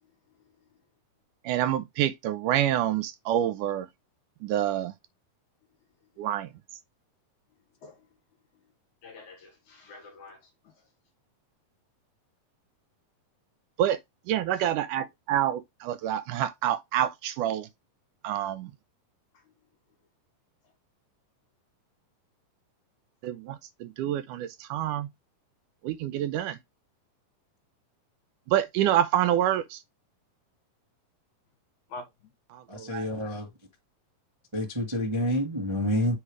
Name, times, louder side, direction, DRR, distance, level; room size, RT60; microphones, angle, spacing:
voice 1, 1.5-3.9 4.4-4.9 6.2-6.5 13.8-14.0 14.3-17.7 18.2-18.7 23.2-25.1 25.8-26.6 28.5-29.8 32.7-33.1, right 11 dB, 80° right, 2.0 m, -27 dB
voice 2, 9.0-10.7 14.5-14.7 31.9-32.3, left 3 dB, 65° left, 2.8 m, -47 dB
voice 3, 32.7-33.5 34.5-36.2, equal, 25° right, 0.6 m, -28 dB
7.3 x 4.7 x 3.1 m
omnidirectional pair, 3.9 m